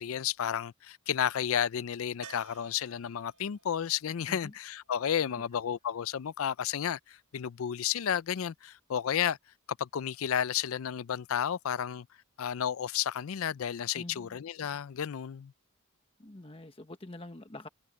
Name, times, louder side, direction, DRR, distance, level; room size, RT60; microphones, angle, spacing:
voice 1, 0.0-9.4 9.8-12.1 12.4-15.5, left 9 dB, 70° left, 0.4 m, -32 dB
sound 1, 2.2-6.1 8.8-8.9 9.1-9.2, right 6 dB, 90° right, 3.1 m, -56 dB
voice 2, 14.0-14.4 16.2-17.7, left 2 dB, 25° left, 1.2 m, -46 dB
head